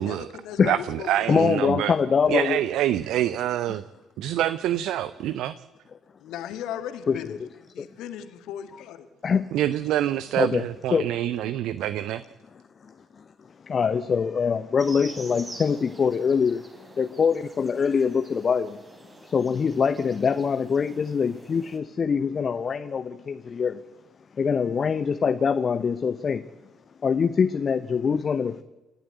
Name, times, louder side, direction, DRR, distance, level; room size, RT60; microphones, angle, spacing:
voice 1, 0.0-1.5 6.2-7.4 7.7-9.1, left 10 dB, 60° left, 1.7 m, -37 dB
voice 2, 0.6-1.9 2.3-3.8 4.2-5.5 9.5-12.2, right 12 dB, 60° right, 0.6 m, -26 dB
voice 3, 1.3-2.6 7.1-7.5 7.8-7.9 9.2-9.5 10.4-10.6 10.9-11.1 13.6-18.8 19.2-23.8 24.4-26.4 27.0-28.6, left 6 dB, 40° left, 0.8 m, -24 dB
sound 1, 14.8-21.8, right 2 dB, 25° right, 4.0 m, -46 dB
28.5 x 12.0 x 8.1 m
figure-of-eight pair, 45°, 0 cm